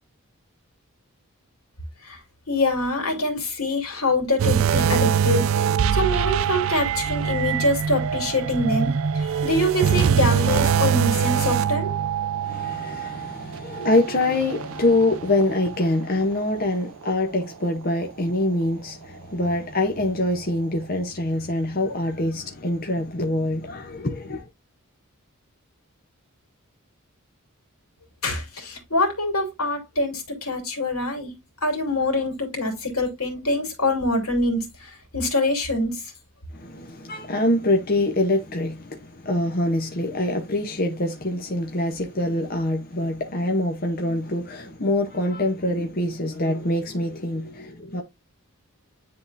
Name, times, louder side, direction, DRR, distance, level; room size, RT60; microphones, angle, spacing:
voice 1, 2.5-5.4 5.9-11.9 28.2-31.3 31.6-36.0, left 1 dB, 85° left, 2.9 m, -25 dB
sound 1, 4.4-15.9 16.2-16.4 17.0-17.1, right 7 dB, 70° right, 0.3 m, -23 dB
voice 2, 12.4-24.5 36.5-48.0, left 1 dB, 45° left, 0.8 m, -25 dB
9.7 x 3.8 x 2.6 m
head